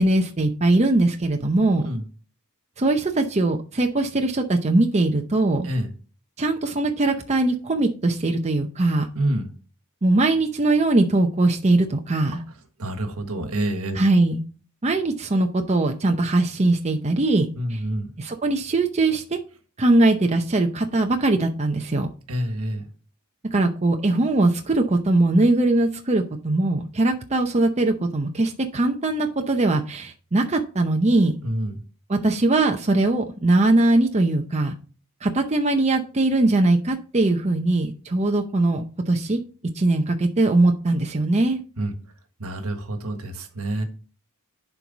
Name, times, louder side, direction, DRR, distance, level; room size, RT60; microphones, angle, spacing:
voice 1, 0.0-1.9 2.8-5.7 6.4-9.1 10.0-12.4 13.9-14.4 14.8-17.8 18.2-19.4 19.8-22.1 23.5-31.3 32.1-34.7 35.2-39.4 39.7-41.6, right 2 dB, 30° right, 4 dB, 0.7 m, -21 dB
voice 2, 9.1-9.5 12.8-14.0 17.6-18.1 22.3-22.9 31.4-31.7 41.8-41.9 42.4-43.8, right 1 dB, 75° right, 6 dB, 1.5 m, -27 dB
11.0 x 4.7 x 4.1 m, 0.38 s
head